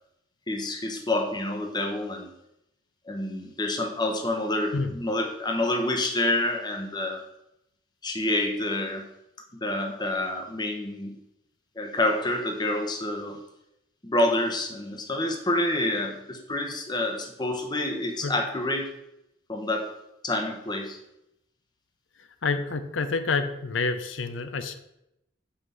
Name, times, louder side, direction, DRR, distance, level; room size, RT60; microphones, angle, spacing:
voice 1, 0.5-2.3 3.1-7.2 8.0-9.0 9.6-11.1 11.8-13.4 14.0-18.9 19.5-19.9 20.2-21.0, left 1 dB, 20° left, 3 dB, 0.9 m, -28 dB
voice 2, 22.2-24.7, left 4 dB, 80° left, 10 dB, 0.6 m, -28 dB
5.7 x 4.8 x 5.5 m, 0.85 s
head